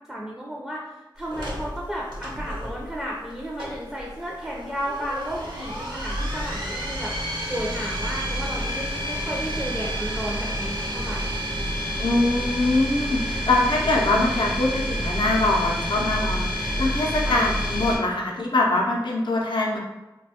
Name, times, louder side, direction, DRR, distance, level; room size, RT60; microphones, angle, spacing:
voice 1, 0.1-11.3 17.2-17.4, equal, 5° right, -4 dB, 0.4 m, -33 dB
sound 1, 1.3-18.0, equal, 70° right, 0.7 m, -29 dB
voice 2, 12.0-19.8, left 2 dB, 70° left, -1 dB, 0.5 m, -23 dB
2.3 x 2.2 x 2.7 m, 1.0 s
wide cardioid pair, 50°, 8 cm